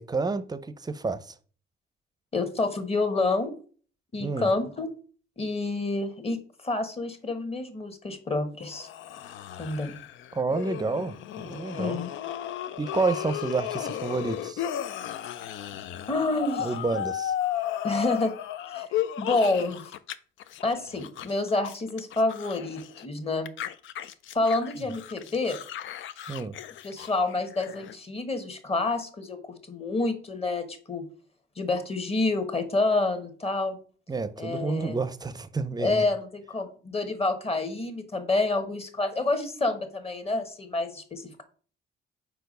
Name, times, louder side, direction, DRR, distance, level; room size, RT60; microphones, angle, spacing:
voice 1, 0.0-1.3 4.2-4.5 10.3-12.0 12.8-14.6 16.6-17.3 26.3-26.5 34.1-36.1, right 3 dB, 20° right, 0.6 m, -29 dB
voice 2, 2.3-3.5 4.1-4.9 5.4-6.4 6.6-8.9 9.6-9.9 11.8-12.1 16.1-16.7 17.8-18.3 18.7-18.9 19.2-19.8 20.6-23.5 24.3-25.6 26.8-29.4 29.7-31.1 31.6-33.8 34.4-35.0 35.8-41.4, left 2 dB, 30° left, 1.3 m, -28 dB
sound 1, 8.6-20.1 20.4-23.1 23.5-27.9, left 11 dB, 75° left, 0.5 m, -35 dB
4.6 x 4.3 x 5.3 m
cardioid pair, 90°, 20 cm